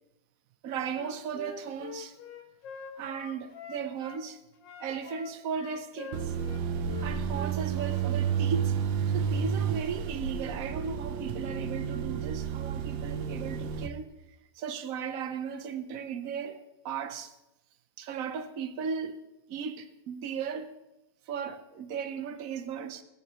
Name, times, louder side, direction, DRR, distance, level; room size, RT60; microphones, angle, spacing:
voice 1, 0.6-2.1 3.0-4.4 4.8-6.3 7.0-8.8 9.1-14.1 14.6-17.3 18.0-19.2 19.5-20.7 21.3-23.0, right 6 dB, 55° right, 1.1 m, -36 dB
Wind instrument woodwind instrument, 1.0-4.2 4.6-8.0, left 6 dB, 75° left, 1.6 m, -45 dB
sound 1, 6.1-13.9, right 7 dB, 80° right, 1.4 m, -31 dB
18.0 x 8.8 x 3.0 m
omnidirectional pair, 2.0 m